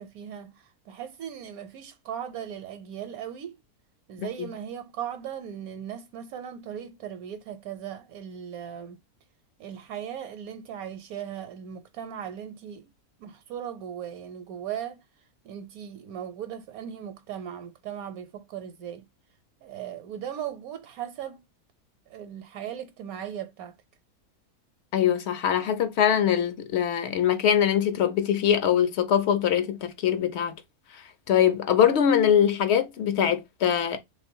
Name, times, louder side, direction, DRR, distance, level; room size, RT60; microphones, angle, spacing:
voice 1, 0.0-3.6 4.1-9.0 9.6-12.9 13.2-15.0 15.4-19.1 19.6-21.4 22.1-23.8, right 9 dB, 80° right, 1.0 m, -38 dB
voice 2, 24.9-30.6 31.3-34.0, left 9 dB, 60° left, 0.7 m, -23 dB
3.2 x 2.5 x 4.3 m
omnidirectional pair, 1.6 m